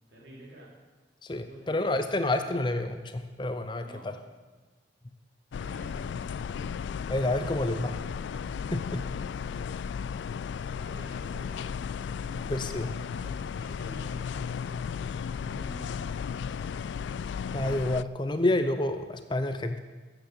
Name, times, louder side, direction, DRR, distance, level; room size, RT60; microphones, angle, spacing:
voice 1, 0.1-0.7 1.4-2.7 3.8-4.1 5.6-6.1 6.8-7.0 7.5-7.7 10.6-11.7 12.1-16.9, right 1 dB, 65° right, -4 dB, 4.1 m, -50 dB
voice 2, 1.2-4.2 7.1-8.0 8.7-9.1 12.5-12.9 17.5-19.8, left 1 dB, 25° left, 9 dB, 0.6 m, -29 dB
sound 1, 5.5-18.0, left 6 dB, 75° left, 0.3 m, -35 dB
13.5 x 8.1 x 8.1 m, 1.3 s
head